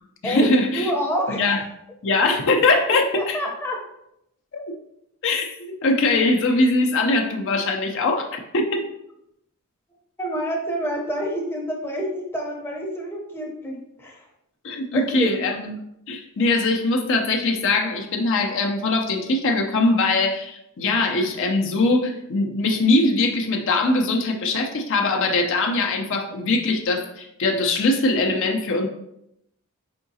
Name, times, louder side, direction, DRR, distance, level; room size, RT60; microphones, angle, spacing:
voice 1, 0.2-0.9 1.4-1.6 2.0-3.4 4.5-4.7 5.2-8.8 14.6-15.7 16.1-28.9, left 2 dB, 60° left, 2 dB, 0.5 m, -21 dB
voice 2, 0.7-1.4 3.1-3.8 10.2-14.2 14.9-15.3, equal, 10° left, -1 dB, 0.7 m, -27 dB
4.6 x 3.6 x 2.7 m, 0.80 s
head